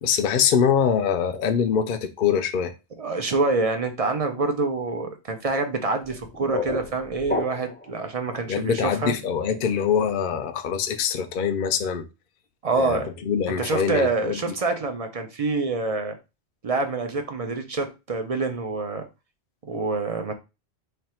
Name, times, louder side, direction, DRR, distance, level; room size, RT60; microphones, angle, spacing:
voice 1, 0.0-2.7 8.5-12.1 12.8-14.4, left 7 dB, 55° left, 0.6 m, -24 dB
voice 2, 3.0-9.1 12.6-13.1 13.6-16.2 16.6-19.1 19.6-20.3, right 3 dB, 45° right, 0.5 m, -26 dB
sound 1, 6.0-7.9, left 3 dB, 15° left, 0.4 m, -31 dB
3.4 x 2.4 x 4.2 m
omnidirectional pair, 1.1 m